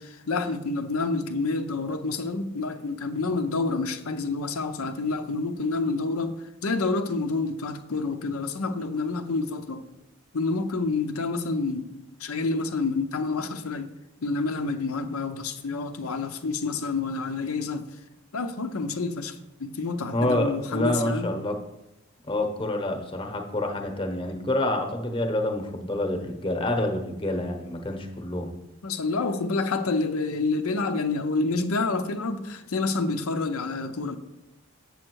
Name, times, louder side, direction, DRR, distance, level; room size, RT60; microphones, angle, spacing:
voice 1, 0.0-9.8 10.3-13.9 14.2-17.9 18.3-21.3 28.8-34.2, left 3 dB, 85° left, 0.7 m, -28 dB
voice 2, 20.1-21.5 22.3-28.5, left 1 dB, 25° left, 0.9 m, -27 dB
7.6 x 7.1 x 4.6 m
head